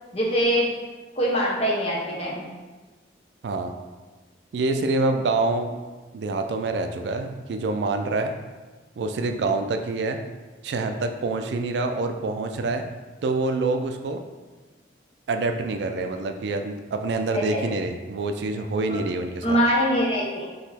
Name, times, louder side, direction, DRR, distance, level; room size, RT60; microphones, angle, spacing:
voice 1, 0.1-0.7 1.2-2.5 17.3-17.6 18.9-19.0 19.4-20.5, equal, 35° left, -4 dB, 0.9 m, -23 dB
voice 2, 3.4-3.7 4.5-5.7 6.1-8.3 9.0-10.2 10.6-12.9 13.2-14.2 15.3-19.6, right 3 dB, 70° right, 6 dB, 0.3 m, -26 dB
4.0 x 2.9 x 4.2 m, 1.3 s
head